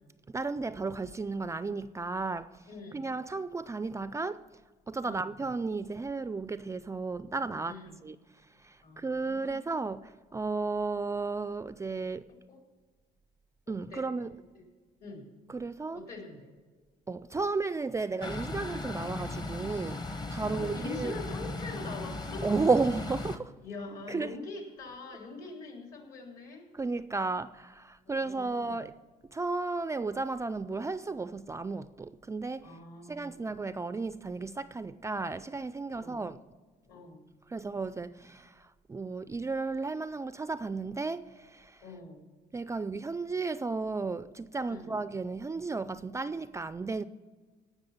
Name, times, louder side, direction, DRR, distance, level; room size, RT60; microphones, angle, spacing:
voice 1, 0.3-2.6 2.9-4.4 4.9-8.2 8.6-12.3 13.7-14.3 15.5-16.0 17.1-21.2 22.4-23.6 24.1-24.4 26.7-29.0 29.3-32.8 33.1-36.4 37.5-41.8 42.5-47.0, right 3 dB, 15° right, 0.4 m, -33 dB
voice 2, 2.7-3.1 5.0-5.3 7.7-8.0 8.8-9.6 12.3-12.6 13.7-14.3 15.0-15.3 15.9-16.5 20.4-22.6 23.6-26.7 28.1-28.8 32.6-33.4 35.9-36.2 36.9-37.2 41.8-42.3 44.7-44.9, left 3 dB, 60° left, 3.7 m, -44 dB
sound 1, 18.2-23.4, left 2 dB, 25° left, 0.9 m, -37 dB
17.5 x 6.1 x 7.4 m
cardioid pair, 110°, 17 cm